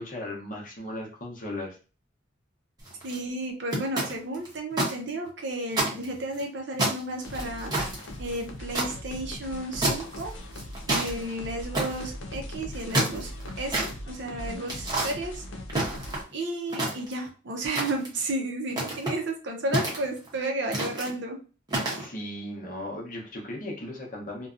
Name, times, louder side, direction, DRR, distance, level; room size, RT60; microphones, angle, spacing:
voice 1, 0.0-1.8 21.9-24.5, left 1 dB, 40° left, -1 dB, 0.8 m, -37 dB
sound 1, 2.8-3.2 3.7-4.9 5.3-5.4 5.7-6.4 6.8-8.9 9.8-10.2 10.5-11.1 11.7-12.1 12.7-13.9 14.7-15.1 15.7-16.3 16.7-17.3 17.8-18.2 18.7-19.2 19.7-20.3 20.7-21.1 21.7-22.1, right 1 dB, 20° right, 0.8 m, -28 dB
voice 2, 3.0-7.7 8.2-10.3 10.9-13.3 13.6-15.4 16.3-21.4, right 2 dB, 60° right, 2 dB, 0.6 m, -32 dB
sound 2, 7.2-16.2, left 1 dB, 70° left, 0.5 m, -40 dB
2.6 x 2.2 x 2.4 m, 0.35 s
head